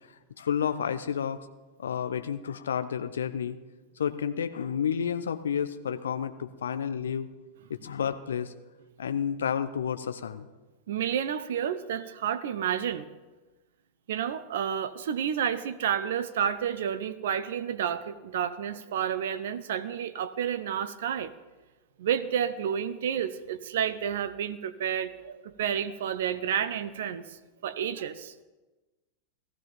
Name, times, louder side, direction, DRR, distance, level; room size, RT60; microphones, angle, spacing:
voice 1, 0.4-1.5 1.8-3.6 4.0-7.3 7.7-8.5 9.0-10.5, left 8 dB, 65° left, 10 dB, 0.9 m, -30 dB
voice 2, 10.9-13.1 14.1-21.3 22.0-27.2 27.6-28.3, right 8 dB, 60° right, 14 dB, 0.7 m, -30 dB
16.0 x 14.0 x 5.2 m, 1.2 s
figure-of-eight pair, 90°, 0 cm